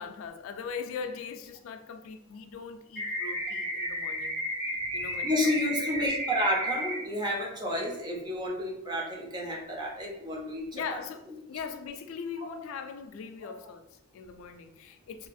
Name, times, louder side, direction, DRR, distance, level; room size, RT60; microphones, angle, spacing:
voice 1, 0.0-6.1 7.8-7.9 10.7-15.3, left 6 dB, 85° left, 8 dB, 0.3 m, -41 dB
sound 1, 3.0-7.0, equal, 60° right, 1.5 m, -33 dB
voice 2, 5.2-10.8 12.4-12.6, left 1 dB, 20° right, -1 dB, 0.5 m, -31 dB
2.8 x 2.3 x 2.5 m, 0.86 s
head